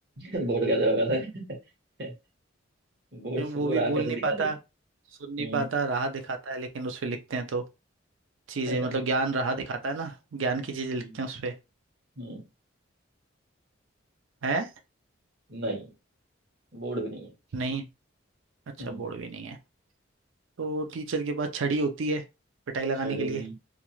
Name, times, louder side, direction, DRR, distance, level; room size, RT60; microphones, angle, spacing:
voice 1, 0.2-1.5 2.0-2.1 3.1-4.5 5.4-5.7 8.7-9.0 11.0-11.2 12.2-12.4 15.5-15.9 16.7-17.3 18.8-19.0 23.0-23.5, right 1 dB, 55° right, 1.0 m, -30 dB
voice 2, 3.4-4.6 5.2-7.6 8.5-11.5 14.4-14.7 17.5-17.9 18.8-19.6 20.6-22.2 22.7-23.4, right 3 dB, 75° right, 0.5 m, -30 dB
2.4 x 2.3 x 3.0 m
head